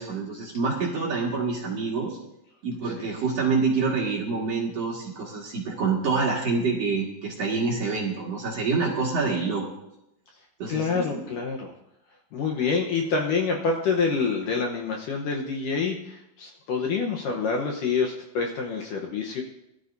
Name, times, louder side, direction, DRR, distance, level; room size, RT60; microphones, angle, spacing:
voice 1, 0.0-2.2 2.6-9.6 10.6-11.2, right 4 dB, 45° right, -4 dB, 2.5 m, -27 dB
voice 2, 10.7-11.7 12.3-19.4, left 5 dB, 70° left, 1 dB, 2.2 m, -27 dB
21.5 x 12.5 x 2.7 m, 0.86 s
omnidirectional pair, 4.7 m